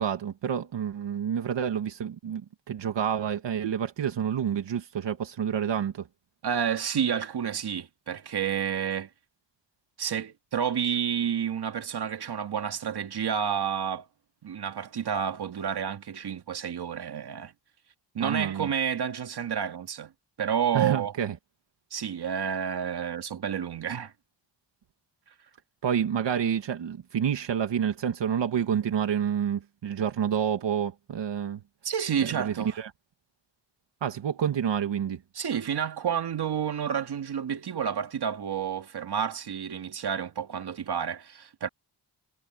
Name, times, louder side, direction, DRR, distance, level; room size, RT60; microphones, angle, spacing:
voice 1, 0.0-6.1 18.2-18.7 20.7-21.4 25.8-31.6 32.2-32.9 34.0-35.2, right 8 dB, 85° right, 1.7 m, -28 dB
voice 2, 6.4-9.1 10.0-14.1 14.4-17.5 18.1-20.1 20.4-21.1 21.9-24.1 31.8-32.8 35.4-41.7, right 8 dB, 65° right, 2.1 m, -30 dB
wide cardioid pair, 100°, 42 cm